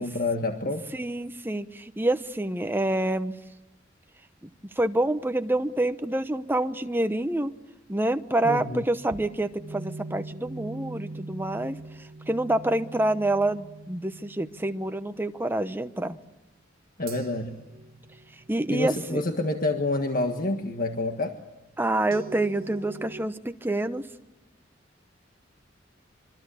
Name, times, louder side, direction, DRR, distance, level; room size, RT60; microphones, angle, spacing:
voice 1, 0.0-0.8 8.4-8.8 17.0-17.6 18.7-21.3, left 2 dB, 50° left, 5 dB, 1.7 m, -28 dB
voice 2, 0.9-3.4 4.4-4.5 4.8-7.5 7.9-11.8 12.3-16.2 18.5-19.2 21.8-24.1, right 1 dB, 10° right, 9 dB, 1.0 m, -27 dB
sound 1, 9.1-15.3 17.1-19.8 22.1-23.3, right 2 dB, 50° right, 0.9 m, -42 dB
26.0 x 24.5 x 8.5 m, 0.99 s
head